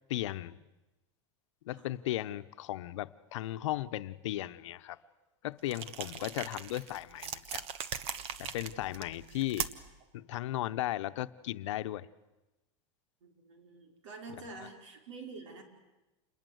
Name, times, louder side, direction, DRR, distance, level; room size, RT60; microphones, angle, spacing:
voice 1, 0.1-0.6 1.6-5.0 5.4-7.7 8.4-9.7 10.1-12.1, left 14 dB, 85° left, 0.9 m, -36 dB
sound 1, 5.7-10.0, right 8 dB, 40° right, 1.3 m, -40 dB
voice 2, 13.2-15.6, right 3 dB, 90° right, 5.1 m, -47 dB
28.5 x 21.5 x 8.0 m
supercardioid pair, 140°, 15 cm